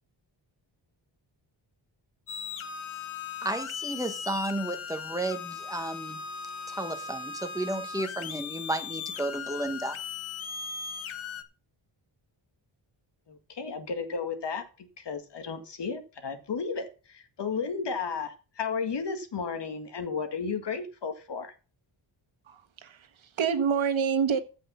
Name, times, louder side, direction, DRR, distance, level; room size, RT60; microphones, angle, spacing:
sound 1, 2.3-11.4, left 6 dB, 90° left, 1.3 m, -38 dB
voice 1, 3.4-6.2 6.7-10.0, right 1 dB, 5° right, 1.3 m, -33 dB
voice 2, 13.3-21.5, left 5 dB, 60° left, 1.9 m, -33 dB
voice 3, 22.5-24.4, right 6 dB, 80° right, 1.6 m, -27 dB
15.0 x 5.5 x 5.6 m
wide cardioid pair, 170°, 47 cm